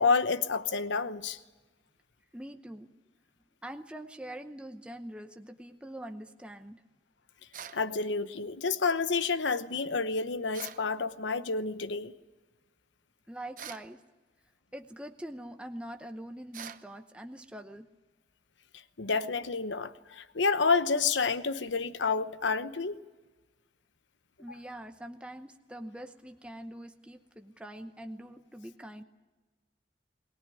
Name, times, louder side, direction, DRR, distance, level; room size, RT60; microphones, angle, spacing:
voice 1, 0.0-1.4 7.7-12.1 19.0-23.0, left 4 dB, 85° left, 1.0 m, -29 dB
voice 2, 2.3-2.9 3.6-6.8 13.3-14.0 14.7-17.9 24.4-29.0, right 1 dB, 5° right, 0.8 m, -44 dB
sound 1, 7.5-7.8 10.5-10.9 13.6-13.9 16.5-16.9, right 8 dB, 45° right, 0.9 m, -43 dB
22.5 x 18.5 x 9.8 m
head